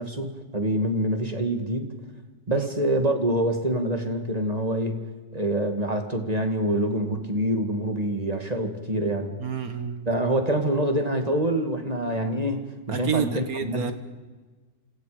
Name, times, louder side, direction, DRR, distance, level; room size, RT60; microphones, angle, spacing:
voice 1, 0.0-1.9 2.5-9.4 10.1-13.9, right 1 dB, 20° right, 5 dB, 2.2 m, -26 dB
voice 2, 9.4-10.1 12.9-13.9, right 7 dB, 55° right, 10 dB, 1.9 m, -29 dB
29.5 x 27.0 x 5.1 m, 1.3 s
omnidirectional pair, 1.9 m